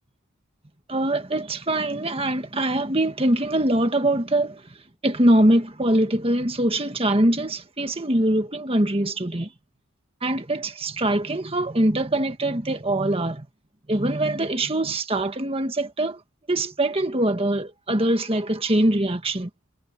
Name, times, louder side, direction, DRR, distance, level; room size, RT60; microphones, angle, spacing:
voice 1, 0.9-4.6 5.0-9.5 10.2-13.4 13.9-16.2 16.5-19.5, right 1 dB, 25° right, 1.7 m, -23 dB
head